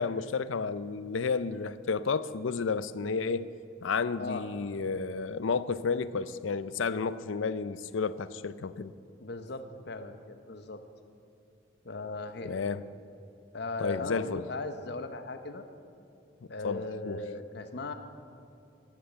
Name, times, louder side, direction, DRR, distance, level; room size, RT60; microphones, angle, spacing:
voice 1, 0.0-3.5 3.8-8.9 12.4-12.8 13.8-14.5 16.6-17.2, left 5 dB, 75° left, 15 dB, 0.5 m, -31 dB
voice 2, 9.2-10.8 11.8-12.6 13.5-15.6 16.5-17.9, left 3 dB, 55° left, 9 dB, 0.9 m, -38 dB
11.5 x 10.5 x 7.8 m, 2.7 s
head